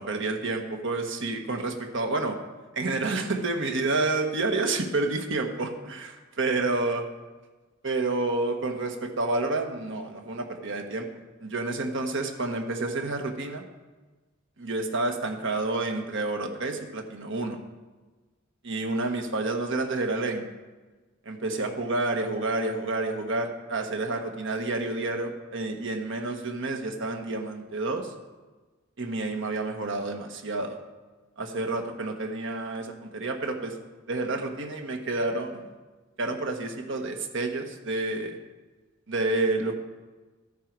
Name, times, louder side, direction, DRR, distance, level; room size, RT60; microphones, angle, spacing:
voice 1, 0.0-2.4 2.7-7.0 7.8-11.1 11.4-13.6 14.6-17.6 18.6-20.5 21.2-28.1 29.0-30.8 31.4-33.7 34.1-35.7 36.2-38.4 39.1-39.8, right 2 dB, 65° right, 4 dB, 1.4 m, -29 dB
13.5 x 9.2 x 4.7 m, 1.3 s
head